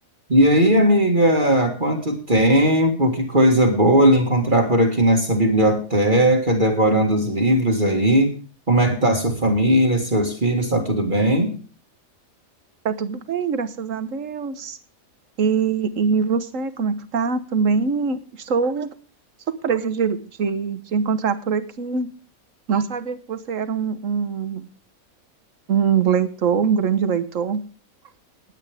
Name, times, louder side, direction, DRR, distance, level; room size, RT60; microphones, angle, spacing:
voice 1, 0.3-8.3 8.7-11.6, right 1 dB, 35° right, 2 dB, 2.1 m, -18 dB
voice 2, 12.8-14.8 15.4-18.9 19.5-22.1 22.7-24.7 25.7-27.6, right 6 dB, 65° right, 13 dB, 1.5 m, -23 dB
19.0 x 9.1 x 3.5 m, 0.37 s
omnidirectional pair, 1.5 m